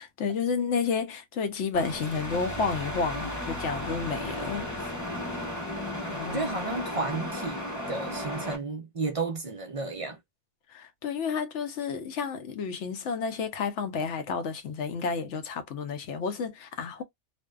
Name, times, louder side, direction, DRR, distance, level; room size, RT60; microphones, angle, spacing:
voice 1, 0.0-4.9 6.1-6.5 10.7-17.0, left 5 dB, 75° left, 1.0 m, -31 dB
sound 1, 1.7-8.6, left 1 dB, 20° left, 0.6 m, -34 dB
voice 2, 6.3-10.2, right 3 dB, 60° right, 0.3 m, -32 dB
2.5 x 2.1 x 2.3 m
omnidirectional pair, 1.3 m